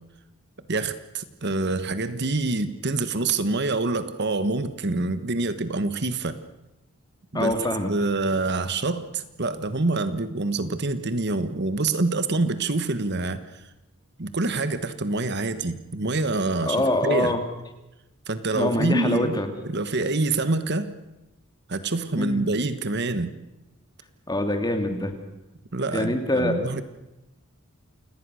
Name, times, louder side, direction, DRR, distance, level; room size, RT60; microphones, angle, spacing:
voice 1, 0.7-6.4 7.3-7.5 7.9-13.6 14.2-17.3 18.3-20.9 21.7-23.3 25.7-26.8, right 2 dB, 55° right, 12 dB, 1.3 m, -26 dB
voice 2, 7.3-7.9 16.7-17.4 18.5-19.5 22.2-22.4 24.3-25.1 25.9-26.5, left 1 dB, 20° left, 6 dB, 2.7 m, -24 dB
29.0 x 18.0 x 6.4 m, 0.96 s
head